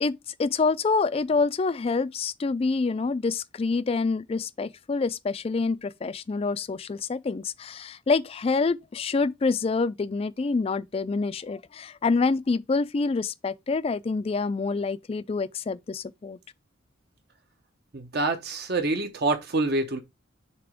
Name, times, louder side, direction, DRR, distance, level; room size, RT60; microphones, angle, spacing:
voice 1, 0.0-16.4, left 4 dB, 30° left, 0.3 m, -27 dB
voice 2, 17.9-20.0, right 2 dB, 55° right, 0.9 m, -26 dB
6.8 x 2.9 x 4.9 m
head